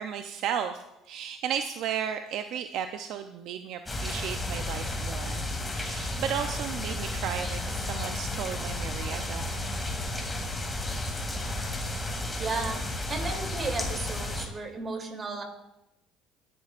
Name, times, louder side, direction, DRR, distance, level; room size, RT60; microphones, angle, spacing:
voice 1, 0.0-9.5, right 8 dB, 70° right, 7 dB, 0.6 m, -34 dB
sound 1, 3.9-14.5, left 1 dB, 15° left, 2.5 m, -32 dB
voice 2, 12.4-12.8 13.1-15.4, right 3 dB, 35° right, 3 dB, 3.1 m, -34 dB
24.0 x 11.0 x 2.5 m, 0.89 s
cardioid pair, 100°, 0 cm